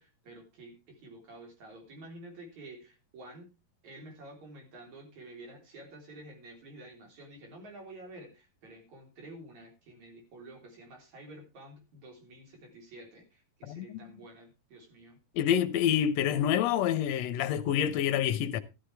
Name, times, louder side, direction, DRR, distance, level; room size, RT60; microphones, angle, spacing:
voice 1, 0.0-3.5 3.8-15.2, right 1 dB, 60° right, 4.9 m, -50 dB
voice 2, 13.6-14.0 15.3-18.6, left 10 dB, 70° left, 1.8 m, -27 dB
13.5 x 12.0 x 3.3 m
omnidirectional pair, 3.8 m